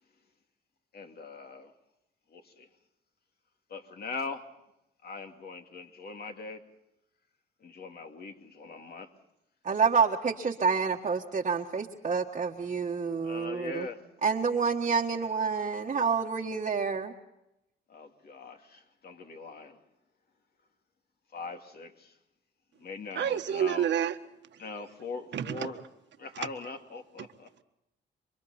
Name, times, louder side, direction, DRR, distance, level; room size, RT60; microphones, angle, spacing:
voice 1, 0.9-1.7 2.3-2.7 3.7-4.5 5.0-6.6 7.6-9.1 13.2-14.0 17.9-19.8 21.3-22.2 22.8-23.9 24.6-25.8 26.2-27.5, left 4 dB, 50° left, 2.6 m, -41 dB
voice 2, 9.6-13.9 14.2-17.1, right 5 dB, 35° right, 1.5 m, -28 dB
voice 3, 23.1-24.1 25.3-25.7, right 9 dB, 65° right, 1.5 m, -28 dB
28.5 x 24.0 x 4.3 m
cardioid pair, 90°, 20 cm